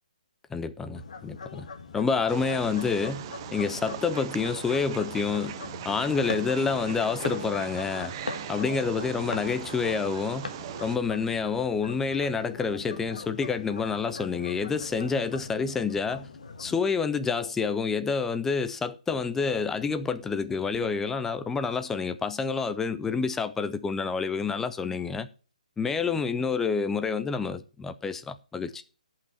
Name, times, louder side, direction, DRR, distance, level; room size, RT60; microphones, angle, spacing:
voice 1, 0.5-1.7 1.9-3.2 3.5-5.5 5.8-8.1 8.5-10.5 10.8-16.3 16.6-25.3 25.8-28.8, left 5 dB, 10° left, 0.6 m, -28 dB
sound 1, 0.9-16.8, left 4 dB, 60° left, 1.7 m, -43 dB
Wild animals, 2.3-11.0, right 12 dB, 35° right, 0.6 m, -40 dB
sound 2, 6.3-11.4, left 2 dB, 85° left, 1.8 m, -41 dB
12.0 x 5.8 x 6.9 m
figure-of-eight pair, 140°, 4 cm